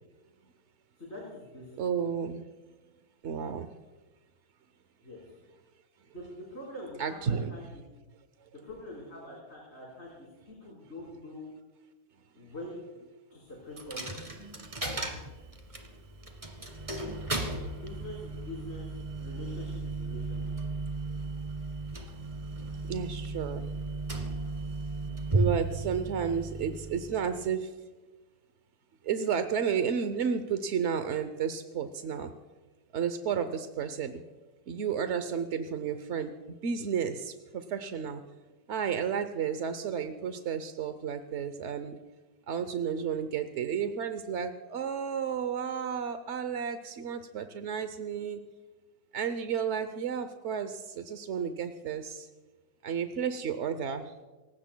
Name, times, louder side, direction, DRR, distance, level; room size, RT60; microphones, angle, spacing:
voice 1, 1.0-1.9 5.0-5.3 6.0-7.8 8.6-11.4 12.3-12.9 13.3-14.4 17.8-18.9 19.2-20.4, left 1 dB, 40° left, -5 dB, 4.6 m, -44 dB
voice 2, 1.8-2.4 3.2-3.7 7.0-7.6 8.4-8.5 22.9-23.7 25.3-27.7 29.0-32.3 32.9-34.2 34.7-38.2 38.7-42.0 42.5-48.4 49.1-52.3 52.8-54.1, right 7 dB, 55° right, 9 dB, 0.8 m, -32 dB
Coin (dropping), 13.8-27.5, right 2 dB, 20° right, 1.7 m, -35 dB
29.0 x 16.5 x 2.2 m, 1.3 s
omnidirectional pair, 1.9 m